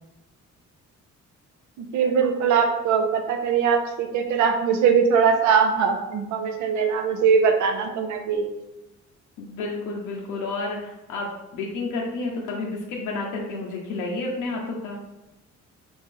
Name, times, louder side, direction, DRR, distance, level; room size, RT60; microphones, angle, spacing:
voice 1, 1.8-8.5, right 6 dB, 75° right, 5 dB, 0.6 m, -21 dB
voice 2, 9.4-15.0, left 3 dB, 90° left, -1 dB, 0.6 m, -30 dB
3.2 x 2.5 x 3.6 m, 0.95 s
cardioid pair, 90°, 30 cm